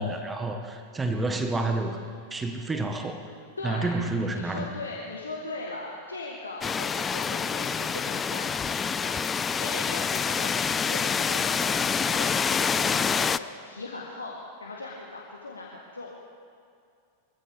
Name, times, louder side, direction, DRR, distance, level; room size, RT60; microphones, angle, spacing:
voice 1, 0.0-2.0 2.3-3.3 3.6-4.7, right 2 dB, 15° right, 6 dB, 1.4 m, -29 dB
voice 2, 3.6-16.1, left 3 dB, 75° left, -2 dB, 1.6 m, -39 dB
sound 1, 6.6-13.4, left 6 dB, 20° left, 0.4 m, -27 dB
23.5 x 15.0 x 3.6 m, 2.4 s
figure-of-eight pair, 90°, 0 cm